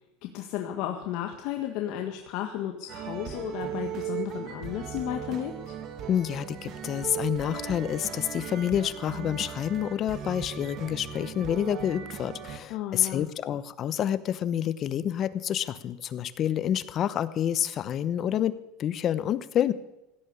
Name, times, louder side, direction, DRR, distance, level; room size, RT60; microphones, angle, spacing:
voice 1, 0.2-5.6 12.7-13.3, left 11 dB, 60° left, 3 dB, 1.6 m, -33 dB
sound 1, 2.9-12.6, right 9 dB, 45° right, 1.9 m, -37 dB
voice 2, 6.1-19.7, left 10 dB, 40° left, 15 dB, 0.9 m, -28 dB
16.5 x 12.0 x 6.9 m, 0.95 s
supercardioid pair, 125°, 0 cm